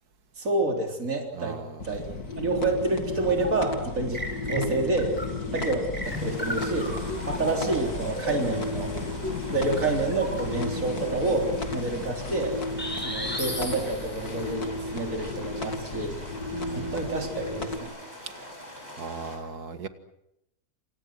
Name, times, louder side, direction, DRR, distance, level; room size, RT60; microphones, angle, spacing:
voice 1, 0.4-1.6 1.8-2.1 2.4-5.2 5.5-6.9 7.3-8.9 9.5-12.6 13.0-16.2 16.6-17.9, right 3 dB, 60° right, 2 dB, 4.4 m, -28 dB
voice 2, 1.3-1.9 16.5-17.2 18.3-18.5 19.0-19.9, right 5 dB, 80° right, 9 dB, 2.3 m, -38 dB
sound 1, 1.8-17.8, left 3 dB, 80° left, 3.0 m, -34 dB
sound 2, 3.0-3.8 4.1-10.7 12.8-14.4, equal, 5° left, 5.5 m, -36 dB
sound 3, 6.0-19.4, equal, 25° left, 8.0 m, -44 dB
28.0 x 28.0 x 6.2 m, 0.82 s
omnidirectional pair, 1.6 m